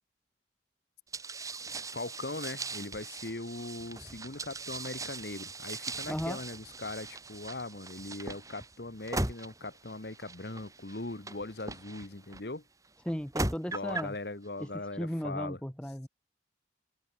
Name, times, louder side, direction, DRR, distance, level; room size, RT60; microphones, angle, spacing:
sound 1, 1.1-12.4 13.1-14.2, right 2 dB, 20° right, 3.8 m, -39 dB
voice 1, 1.9-12.6 13.7-15.6, left 2 dB, 60° left, 1.4 m, -40 dB
voice 2, 6.1-6.4 13.1-14.1 14.6-14.7 15.0-16.1, equal, 5° left, 0.9 m, -35 dB
head